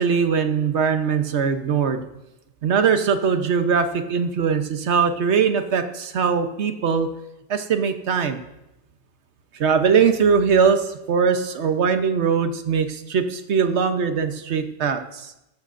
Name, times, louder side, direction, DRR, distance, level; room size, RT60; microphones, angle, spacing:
voice 1, 0.0-2.0 2.6-7.1 7.5-8.4 9.6-15.2, right 6 dB, 70° right, 8 dB, 1.2 m, -21 dB
15.5 x 13.5 x 2.6 m, 0.92 s
omnidirectional pair, 1.2 m